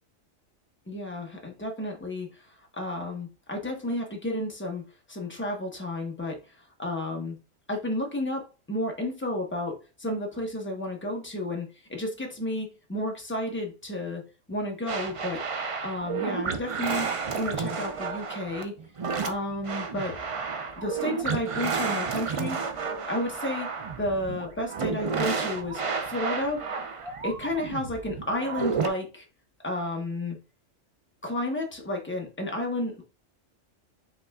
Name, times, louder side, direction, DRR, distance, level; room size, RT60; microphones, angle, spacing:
voice 1, 0.9-7.4 7.7-14.2 14.5-15.4 15.8-18.7 19.2-20.2 20.8-22.6 23.1-23.7 24.0-25.8 26.1-26.6 27.2-29.2 29.6-30.4 31.2-33.0, left 1 dB, 10° left, 1 dB, 0.9 m, -32 dB
sound 1, 14.9-28.9, right 5 dB, 55° right, 0.3 m, -31 dB
5.6 x 3.5 x 2.4 m, 0.32 s
omnidirectional pair, 1.4 m